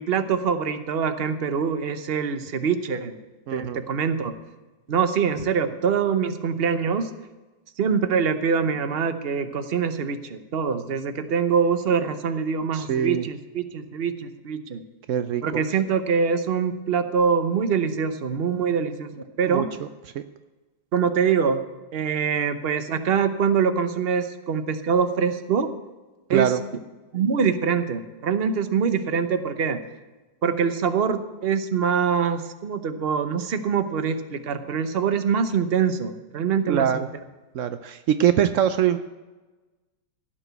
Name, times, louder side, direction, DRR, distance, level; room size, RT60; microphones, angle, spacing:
voice 1, 0.0-3.2 3.5-4.3 4.9-7.1 7.8-14.8 15.4-19.7 20.9-21.6 21.9-25.7 26.3-26.5 27.1-29.8 30.4-37.1, right 6 dB, 45° right, 10 dB, 0.8 m, -24 dB
voice 2, 3.5-3.8 12.7-13.3 15.1-15.6 19.5-19.7 20.1-20.2 26.3-26.6 36.7-37.1 37.5-39.0, right 9 dB, 80° right, 11 dB, 0.6 m, -23 dB
15.5 x 6.1 x 8.0 m, 1.2 s
omnidirectional pair, 2.0 m